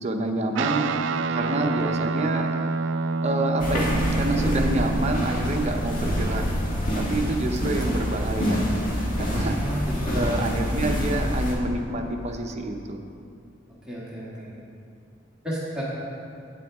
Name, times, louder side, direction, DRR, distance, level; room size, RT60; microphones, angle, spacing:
voice 1, 0.0-0.9 1.3-2.5 3.2-6.4 6.9-8.6 9.2-9.6 10.1-13.1, right 1 dB, 35° right, 3 dB, 0.7 m, -28 dB
Guitar, 0.6-8.2, right 3 dB, 75° right, 0.3 m, -29 dB
sound 1, 3.6-11.5, equal, 45° left, 1.4 m, -26 dB
voice 2, 9.6-10.3 13.9-14.5 15.4-15.8, equal, 5° right, -8 dB, 1.5 m, -31 dB
9.0 x 8.8 x 3.5 m, 2.5 s
head